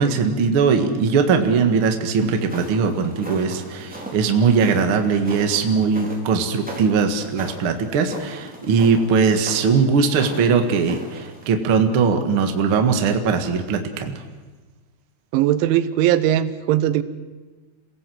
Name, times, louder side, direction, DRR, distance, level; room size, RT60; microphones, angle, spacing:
voice 1, 0.0-14.2, right 5 dB, 60° right, 5 dB, 1.3 m, -20 dB
sound 1, 2.2-11.5, right 1 dB, ahead, 3.1 m, -38 dB
voice 2, 15.3-17.0, right 12 dB, 90° right, 14 dB, 3.3 m, -19 dB
28.0 x 17.5 x 7.8 m, 1.3 s
omnidirectional pair, 5.3 m